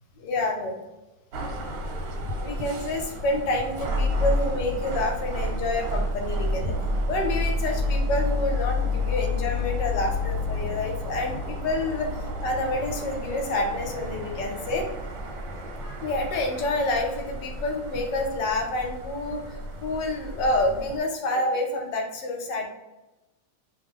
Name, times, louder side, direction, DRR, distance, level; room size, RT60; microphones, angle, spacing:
voice 1, 0.2-0.8 2.4-6.7 7.1-14.9 16.0-22.7, left 2 dB, 70° left, 2 dB, 1.2 m, -28 dB
sound 1, 1.3-21.0, left 1 dB, 90° right, 1.4 m, -30 dB
3.0 x 2.2 x 3.5 m, 1.0 s
omnidirectional pair, 2.1 m